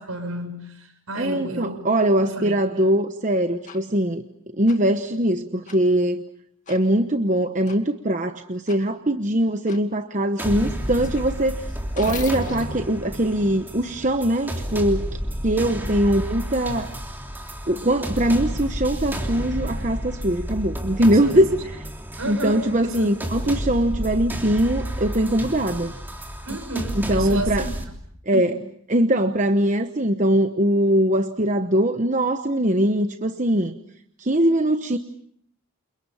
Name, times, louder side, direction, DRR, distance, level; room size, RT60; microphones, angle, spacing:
voice 1, 0.0-1.8 2.2-2.9 10.5-11.1 15.8-16.0 21.2-21.4 22.2-23.1 23.4-23.5 26.4-27.7 28.3-28.5, right 2 dB, 75° right, 6 dB, 7.2 m, -32 dB
voice 2, 1.2-4.2 4.5-6.2 6.7-11.7 11.9-15.1 15.4-16.9 17.7-21.8 22.3-25.9 26.9-27.7 28.3-28.5 28.9-33.8 34.2-35.0, right 1 dB, 35° right, 7 dB, 1.0 m, -21 dB
sound 1, 3.7-3.8 4.7-4.8 5.7-5.8 6.7-6.8 7.7-7.8 8.7-8.8 9.7-9.8 10.4-14.2, left 3 dB, 35° left, 2.4 m, -39 dB
sound 2, 10.4-27.8, equal, 10° right, 3.2 m, -31 dB
29.5 x 29.0 x 5.6 m, 0.64 s
head